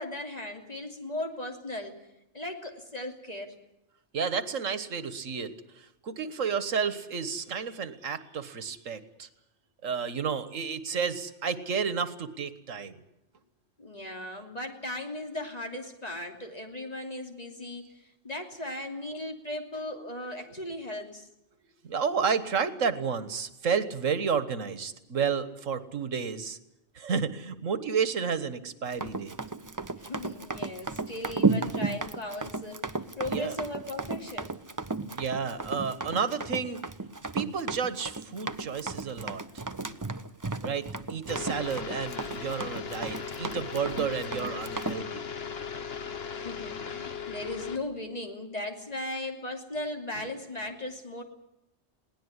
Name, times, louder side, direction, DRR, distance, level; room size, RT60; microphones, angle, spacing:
voice 1, 0.0-2.0 2.3-3.6 13.8-21.3 30.0-34.6 46.3-51.2, left 1 dB, 30° left, 3 dB, 3.1 m, -37 dB
voice 2, 4.1-9.3 9.8-12.9 20.5-20.8 21.8-26.6 26.9-29.3 33.3-33.5 35.1-36.8 37.3-40.0 40.6-45.3, right 6 dB, 85° right, 13 dB, 1.8 m, -31 dB
Run, 28.9-45.0, right 3 dB, 20° right, 0.7 m, -33 dB
sound 1, 41.3-47.8, left 6 dB, 55° left, 1.5 m, -37 dB
21.5 x 18.0 x 9.7 m, 0.88 s
omnidirectional pair, 1.3 m